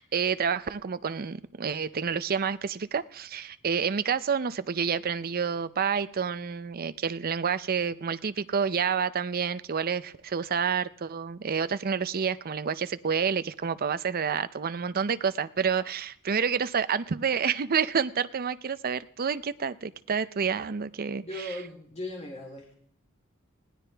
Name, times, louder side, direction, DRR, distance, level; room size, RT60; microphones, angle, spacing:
voice 1, 0.0-21.2, right 6 dB, 45° right, 13 dB, 0.6 m, -29 dB
voice 2, 21.2-22.7, left 1 dB, 30° left, -1 dB, 3.4 m, -38 dB
20.5 x 17.0 x 3.4 m, 0.65 s
head